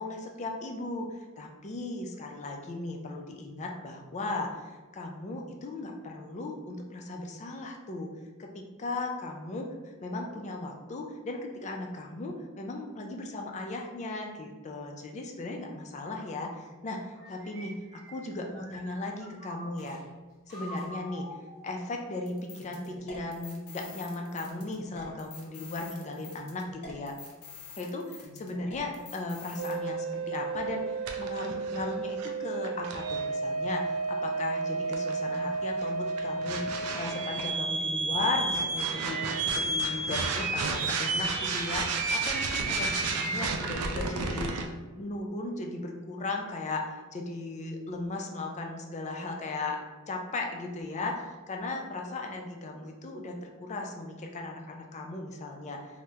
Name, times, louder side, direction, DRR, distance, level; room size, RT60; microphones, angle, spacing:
voice 1, 0.0-8.1 8.4-20.0 20.5-21.3 21.6-27.2 27.8-28.1 28.4-44.7 45.0-46.8 47.1-49.8 50.1-55.8, left 2 dB, 30° left, 2 dB, 0.4 m, -37 dB
sound 1, 17.1-20.0 20.5-22.3, right 1 dB, 50° right, 0.9 m, -46 dB
sound 2, 22.3-29.8, left 4 dB, 85° left, 0.7 m, -47 dB
sound 3, 29.6-44.7, right 3 dB, 85° right, 0.4 m, -31 dB
2.8 x 2.1 x 3.4 m, 1.3 s
head